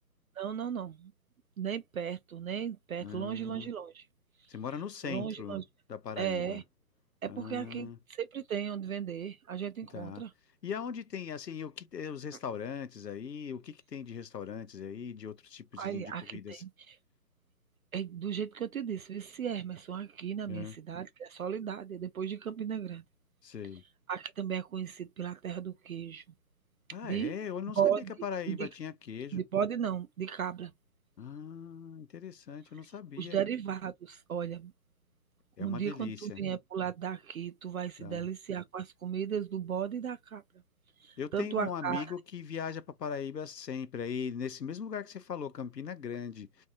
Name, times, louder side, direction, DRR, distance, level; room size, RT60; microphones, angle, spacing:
voice 1, 0.4-1.1 1.6-4.1 5.0-5.6 6.2-6.6 7.2-10.3 15.8-17.0 17.9-23.0 24.1-26.2 27.0-27.3 27.8-28.1 28.5-28.7 29.3-30.7 33.2-34.7 35.6-40.4 41.0-42.0, right 8 dB, 60° right, 0.5 m, -35 dB
voice 2, 3.0-3.7 4.5-5.6 5.9-6.6 7.3-8.0 9.9-10.3 10.6-16.6 20.5-20.8 23.4-23.8 26.9-27.9 28.2-29.4 31.2-33.4 35.6-36.4 38.0-38.3 41.2-46.7, left 7 dB, 90° left, 0.7 m, -40 dB
3.5 x 2.7 x 2.4 m
figure-of-eight pair, 140°, 48 cm